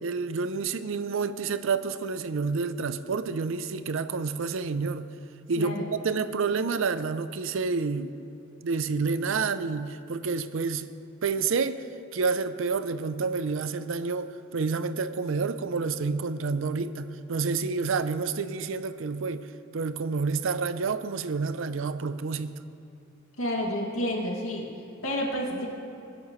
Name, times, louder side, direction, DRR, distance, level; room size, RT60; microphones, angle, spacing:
voice 1, 0.0-5.1 5.5-8.1 8.6-10.9 11.2-11.8 12.1-22.5, right 4 dB, 70° right, 0.5 m, -29 dB
voice 2, 5.6-5.9 23.4-24.7 25.0-25.7, equal, 80° left, 2.4 m, -30 dB
23.5 x 10.5 x 3.1 m
head